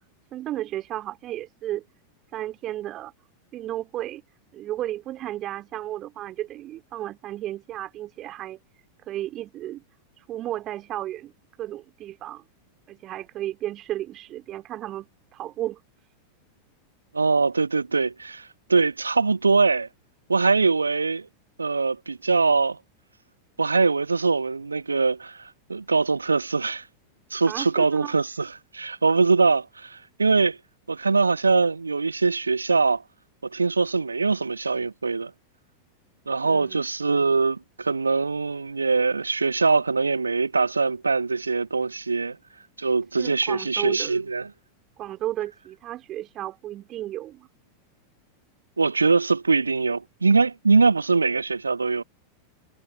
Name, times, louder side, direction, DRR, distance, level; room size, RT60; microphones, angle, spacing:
voice 1, 0.3-1.8 2.3-3.1 3.5-4.2 4.5-8.6 9.0-9.8 10.2-11.3 11.6-12.4 12.9-15.8 27.4-28.1 36.4-36.8 43.2-44.2 45.0-47.5, right 13 dB, 35° right, 3.6 m, -33 dB
voice 2, 17.1-19.9 20.3-21.3 21.6-22.8 23.6-26.9 27.3-30.6 30.9-33.0 33.4-35.3 36.3-42.4 42.8-44.5 48.8-52.0, right 4 dB, 80° right, 0.5 m, -22 dB
figure-of-eight pair, 90°, 0 cm